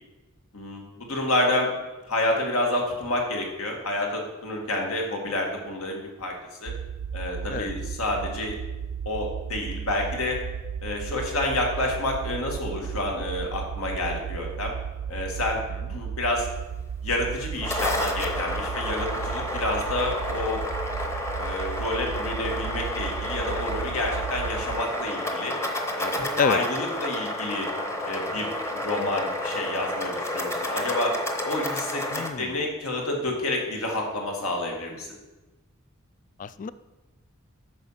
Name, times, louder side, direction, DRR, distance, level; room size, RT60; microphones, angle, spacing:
voice 1, 0.5-1.7 2.1-6.3 6.6-6.7 7.1-8.5 9.1-10.4 10.8-14.7 15.1-15.6 15.9-16.5 17.0-20.6 21.4-25.6 26.0-27.7 28.0-31.1 31.5-32.0 32.4-35.1, left 1 dB, 75° left, 0 dB, 2.0 m, -29 dB
sound 1, 6.7-24.8, right 7 dB, 60° right, 0.3 m, -35 dB
sound 2, 17.4-32.3, left 1 dB, 15° left, 0.9 m, -31 dB
voice 2, 32.1-32.6 36.4-36.7, left 6 dB, 35° left, 15 dB, 0.3 m, -27 dB
8.9 x 6.3 x 5.8 m, 1.1 s
head